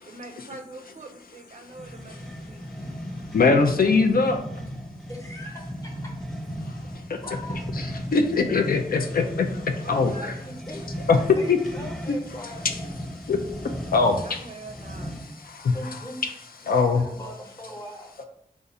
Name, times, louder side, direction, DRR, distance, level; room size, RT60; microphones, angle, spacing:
voice 1, 0.1-2.6 9.8-10.3 14.2-15.2, right 2 dB, 50° right, 4 dB, 0.5 m, -43 dB
sound 1, 1.7-15.4, equal, 5° left, 0.4 m, -36 dB
voice 2, 2.7-3.0 3.3-4.4 6.6-7.2 7.7-10.3 11.1-11.6 12.1-12.2 13.1-14.5 15.2-16.3 16.6-17.0, left 4 dB, 75° left, 5 dB, 0.4 m, -23 dB
voice 3, 5.1-6.1 7.2-7.7 10.4-10.8 11.3-12.9 15.7-16.2 16.6-18.1, equal, 20° left, -1 dB, 0.9 m, -40 dB
2.6 x 2.4 x 4.0 m, 0.77 s
wide cardioid pair, 90°, 15 cm